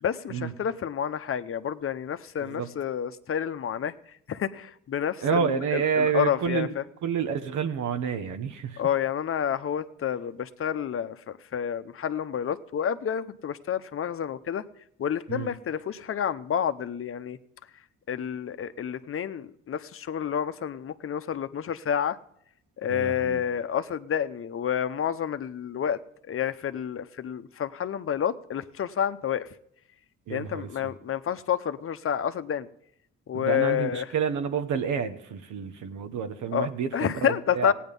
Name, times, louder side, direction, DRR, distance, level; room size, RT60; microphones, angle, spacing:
voice 1, 0.0-3.9 4.3-6.8 8.8-14.6 15.0-17.4 18.1-22.2 22.8-26.0 26.3-29.5 30.3-32.7 33.3-34.1 36.5-36.7 36.9-37.7, left 9 dB, 45° left, 12 dB, 0.8 m, -29 dB
voice 2, 5.2-6.7 7.0-8.8 15.3-15.5 22.9-23.4 30.3-30.9 33.3-37.7, right 7 dB, 75° right, 8 dB, 1.1 m, -29 dB
16.5 x 9.3 x 5.4 m, 0.74 s
cardioid pair, 90°, 30 cm